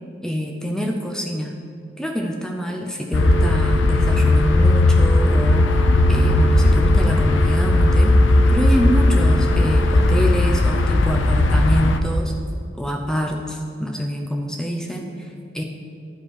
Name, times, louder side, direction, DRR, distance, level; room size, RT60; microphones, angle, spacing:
voice 1, 0.2-1.6 2.0-8.2 8.5-12.3 12.8-15.6, equal, 5° left, 2 dB, 0.5 m, -26 dB
sound 1, 3.1-12.0, left 2 dB, 85° left, 0.5 m, -16 dB
Telephone, 3.2-9.9, equal, 55° left, 2.4 m, -30 dB
11.0 x 5.1 x 4.8 m, 2.3 s
head